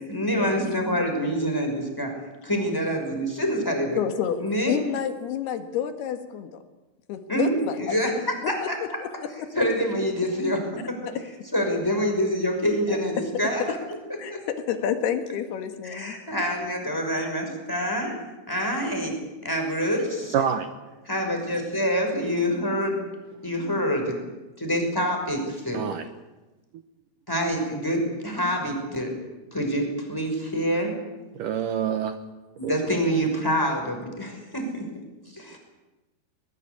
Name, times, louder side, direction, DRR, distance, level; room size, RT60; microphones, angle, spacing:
voice 1, 0.1-2.1 2.4-4.0 4.4-4.8 7.3-8.1 8.5-8.8 9.5-11.0 11.5-13.8 14.3-14.4 15.8-18.1 18.5-20.4 21.1-23.0 23.4-24.2 24.6-25.8 27.3-29.1 29.5-30.9 32.6-34.9 35.3-35.6, equal, 5° left, 3 dB, 5.6 m, -26 dB
voice 2, 4.0-4.4 4.7-6.6 7.1-8.0 8.4-8.5 9.0-9.5 11.1-11.2 12.9-13.0 14.2-14.3 14.7-16.2, left 9 dB, 85° left, 7 dB, 3.6 m, -29 dB
voice 3, 20.3-20.7 25.7-26.1 31.3-32.2 32.6-32.7, right 8 dB, 70° right, 8 dB, 2.3 m, -26 dB
21.5 x 21.5 x 8.4 m, 1.1 s
omnidirectional pair, 4.5 m